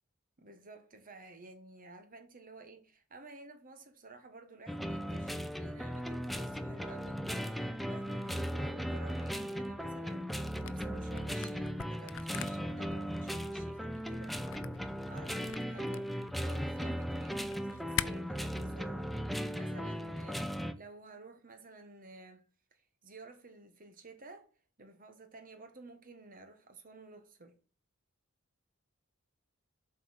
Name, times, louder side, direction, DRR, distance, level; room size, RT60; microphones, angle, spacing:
voice 1, 0.4-14.4 15.1-24.5 24.8-27.6, right 2 dB, 40° right, 1.3 m, -53 dB
sound 1, 4.7-20.7, equal, ahead, 0.6 m, -37 dB
Camera, 10.5-18.1, left 10 dB, 60° left, 0.5 m, -43 dB
7.8 x 4.5 x 6.3 m
head